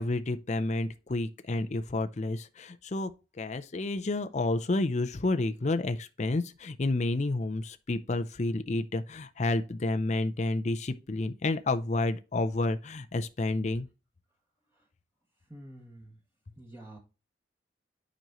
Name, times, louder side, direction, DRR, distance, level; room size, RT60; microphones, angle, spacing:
voice 1, 0.0-3.1 3.4-13.9, left 2 dB, 40° left, 0.5 m, -30 dB
voice 2, 15.5-16.2 16.6-17.0, right 1 dB, 15° right, 1.9 m, -48 dB
9.1 x 5.2 x 3.0 m
head